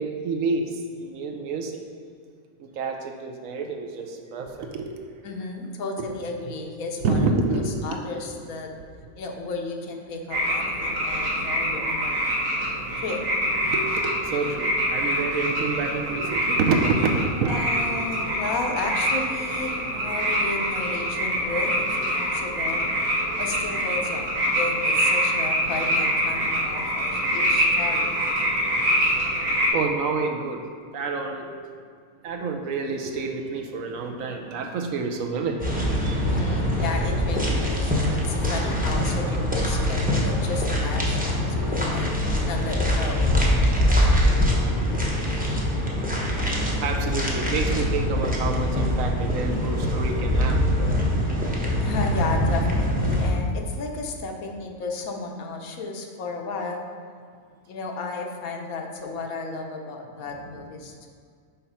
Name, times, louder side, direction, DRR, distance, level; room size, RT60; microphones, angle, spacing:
voice 1, 0.0-1.8 2.6-4.9 6.0-6.1 7.0-8.1 13.6-17.8 18.1-18.3 28.4-28.9 29.7-30.6 30.9-31.5 32.2-36.2 44.8-46.4 46.7-50.6, right 4 dB, 70° right, 3 dB, 1.0 m, -28 dB
voice 2, 5.2-8.7 9.2-12.2 13.0-13.2 17.5-22.9 23.4-28.2 36.3-42.1 42.4-43.2 51.8-56.8 57.7-61.1, left 3 dB, 75° left, 2 dB, 1.2 m, -33 dB
sound 1, 10.3-29.7, equal, 85° right, 1.7 m, -25 dB
sound 2, 35.6-53.3, equal, 10° right, 0.7 m, -23 dB
5.7 x 4.3 x 5.5 m, 2.1 s
omnidirectional pair, 1.5 m